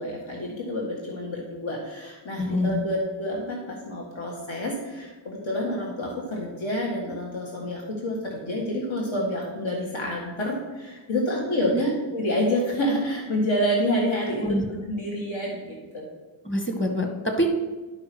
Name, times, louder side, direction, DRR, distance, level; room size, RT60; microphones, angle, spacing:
voice 1, 0.0-14.6 14.8-16.1, equal, 75° left, -2 dB, 1.8 m, -28 dB
voice 2, 2.4-2.8 11.7-11.8 14.3-14.7 16.5-17.5, equal, 25° left, 3 dB, 1.6 m, -25 dB
11.0 x 4.9 x 6.0 m, 1.2 s
wide cardioid pair, 90°, 47 cm